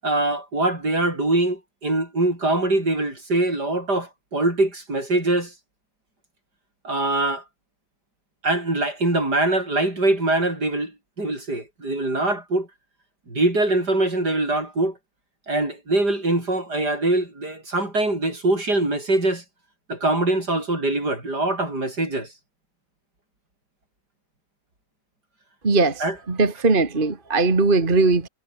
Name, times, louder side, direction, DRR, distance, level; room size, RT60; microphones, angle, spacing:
voice 1, 0.0-5.5 6.8-7.4 8.4-12.7 13.3-14.9 15.5-19.4 19.9-22.3 26.0-26.2, right 2 dB, 65° right, 8.0 m, -23 dB
voice 2, 25.6-28.3, right 3 dB, 30° right, 2.2 m, -20 dB
omnidirectional pair, 1.9 m